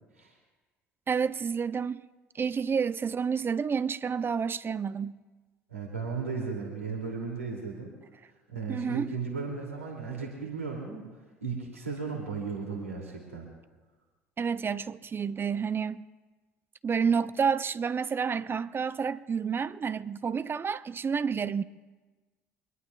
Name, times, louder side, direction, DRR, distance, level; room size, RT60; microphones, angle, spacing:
voice 1, 1.1-2.0 2.3-5.2 8.7-9.1 14.4-16.0 16.8-21.6, right 6 dB, 30° right, 0.6 m, -29 dB
voice 2, 5.7-7.9 8.5-11.1 11.4-13.5, right 5 dB, 90° right, 2.7 m, -35 dB
25.0 x 21.0 x 2.4 m
figure-of-eight pair, 60°, 7 cm